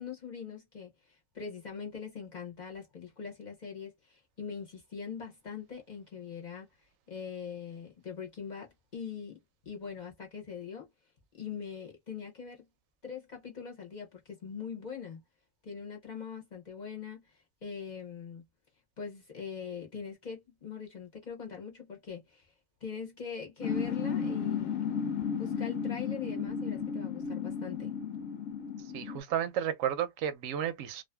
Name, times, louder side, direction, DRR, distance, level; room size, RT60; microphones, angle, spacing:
voice 1, 0.0-6.7 7.1-9.4 9.7-10.9 11.3-12.7 13.0-15.2 15.6-18.4 19.0-22.5 22.8-25.1 25.4-27.9, left 6 dB, 45° left, 0.7 m, -42 dB
sound 1, 23.6-29.2, left 6 dB, 90° left, 1.0 m, -34 dB
voice 2, 28.9-31.0, right 10 dB, 85° right, 1.0 m, -32 dB
2.4 x 2.4 x 2.2 m
omnidirectional pair, 1.3 m